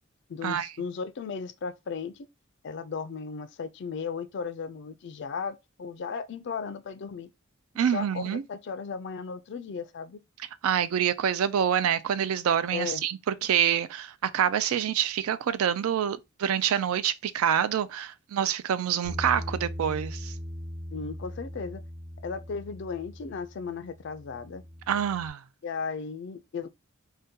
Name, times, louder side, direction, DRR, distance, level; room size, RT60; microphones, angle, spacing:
voice 1, 0.3-2.3 2.6-7.3 7.9-10.2 12.7-13.0 20.9-21.8 22.2-24.6 25.6-26.7, left 5 dB, 55° left, 0.3 m, -35 dB
voice 2, 7.8-8.4 10.6-20.3 24.9-25.4, right 9 dB, 85° right, 0.3 m, -26 dB
Bass guitar, 19.0-25.3, equal, 30° right, 1.2 m, -40 dB
2.7 x 2.2 x 3.6 m
head